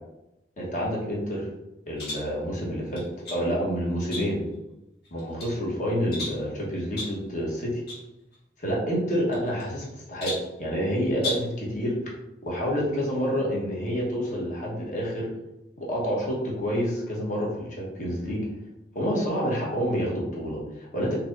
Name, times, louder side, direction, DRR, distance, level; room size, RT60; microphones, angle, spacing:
voice 1, 0.6-1.5 1.9-4.4 5.1-7.8 8.6-12.0 12.4-15.3 15.8-18.5 18.9-21.1, equal, 45° left, -4 dB, 1.2 m, -28 dB
sound 1, 2.0-2.3 3.0-3.5 4.1-4.5 5.0-5.5 6.1-6.5 7.0-7.2 7.9-8.0 8.3-8.4 9.3-9.8 10.2-10.5 11.1-11.6, left 2 dB, 65° left, 1.4 m, -35 dB
4.6 x 2.8 x 2.5 m, 0.94 s
head